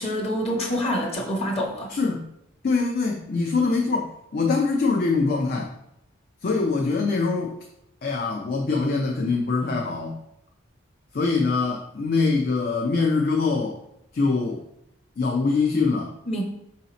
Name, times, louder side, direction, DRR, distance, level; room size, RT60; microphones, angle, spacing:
voice 1, 0.0-1.9 16.3-16.4, equal, 30° left, 0 dB, 0.8 m, -26 dB
voice 2, 1.9-2.3 2.6-5.7 6.4-7.6 8.0-10.2 11.1-13.8 14.1-14.6 15.2-16.1, left 4 dB, 50° left, 1 dB, 0.4 m, -23 dB
4.8 x 2.8 x 4.0 m, 0.80 s
head